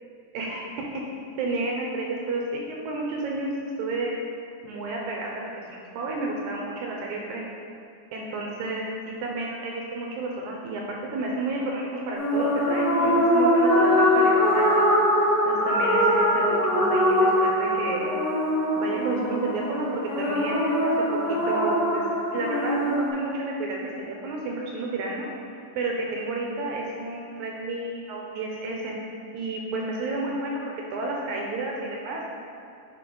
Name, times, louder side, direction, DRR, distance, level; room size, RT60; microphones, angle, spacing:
voice 1, 0.3-1.1 1.4-3.5 3.8-4.2 4.6-7.4 8.1-14.8 15.5-18.0 18.8-20.9 21.3-22.0 22.3-25.3 25.8-29.0 29.3-32.4, right 2 dB, 80° right, -1 dB, 1.8 m, -31 dB
sound 1, 12.1-23.1, equal, 60° left, 1.1 m, -22 dB
9.4 x 4.3 x 3.8 m, 2.5 s
omnidirectional pair, 4.0 m